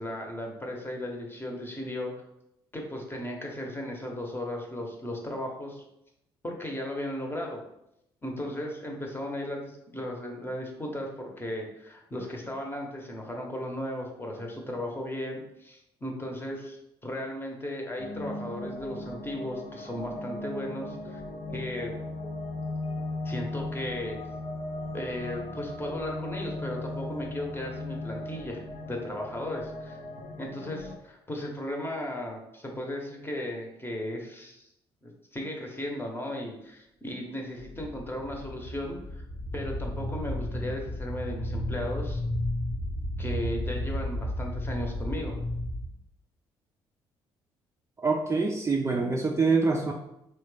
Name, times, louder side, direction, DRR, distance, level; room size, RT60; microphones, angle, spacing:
voice 1, 0.0-2.2 2.7-5.8 6.4-7.6 8.2-21.2 21.5-21.9 23.2-24.2 24.9-28.6 28.9-30.0 30.4-34.7 35.0-39.2 39.5-42.2 43.2-45.4, left 1 dB, 20° left, 1 dB, 0.8 m, -36 dB
sound 1, 18.0-31.0, left 2 dB, 60° left, 0.6 m, -37 dB
sound 2, 37.6-45.9, left 1 dB, 80° left, 1.2 m, -33 dB
voice 2, 48.0-49.9, right 4 dB, 25° right, 1 dB, 0.4 m, -25 dB
3.0 x 2.2 x 3.2 m, 0.80 s
hypercardioid pair, 50°, 12 cm